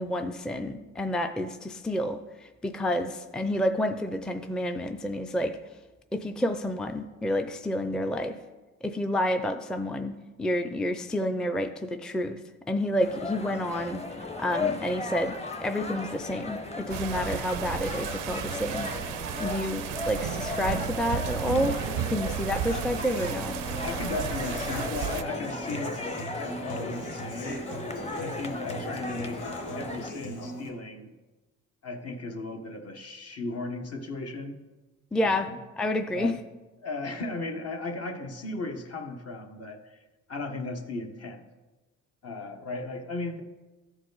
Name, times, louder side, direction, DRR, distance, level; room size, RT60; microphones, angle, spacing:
voice 1, 0.0-2.2 2.6-5.6 6.1-8.4 8.8-12.4 12.7-14.0 14.4-18.9 19.4-21.8 22.1-23.5 35.1-35.5 35.8-36.3, left 1 dB, 5° left, 7 dB, 0.4 m, -29 dB
sound 1, 13.0-30.1, left 3 dB, 20° left, 0.9 m, -36 dB
sound 2, 16.9-25.2, right 11 dB, 85° right, 0.5 m, -34 dB
Human voice / Acoustic guitar, 22.7-30.7, equal, 85° left, 1.6 m, -39 dB
voice 2, 23.8-26.0 26.4-27.6 28.2-29.5 29.7-31.1 31.8-34.6 35.2-35.6 36.1-36.4 36.8-41.5 42.2-43.4, left 2 dB, 55° left, 5 dB, 1.1 m, -36 dB
13.5 x 4.8 x 3.9 m, 1.2 s
cardioid pair, 90°, 30 cm